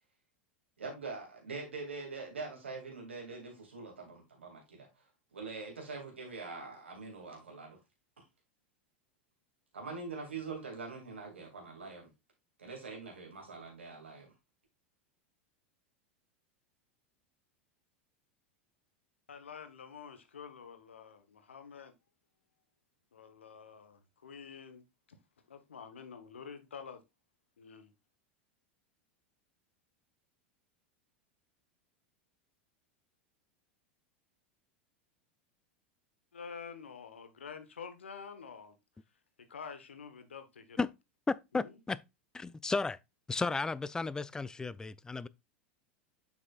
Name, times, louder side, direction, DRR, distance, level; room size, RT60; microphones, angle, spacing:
voice 1, 0.8-4.9 5.3-7.8 9.7-12.1 12.6-14.3, right 4 dB, 85° right, 2.4 m, -43 dB
voice 2, 19.3-21.9 23.1-24.8 25.5-27.0 27.6-27.9 36.3-38.8 39.5-40.8 41.6-41.8, left 6 dB, 80° left, 1.1 m, -48 dB
voice 3, 41.3-42.0 42.3-43.0 43.3-45.3, left 3 dB, 10° left, 0.4 m, -34 dB
7.6 x 6.1 x 2.4 m
hypercardioid pair, 90°, 6 cm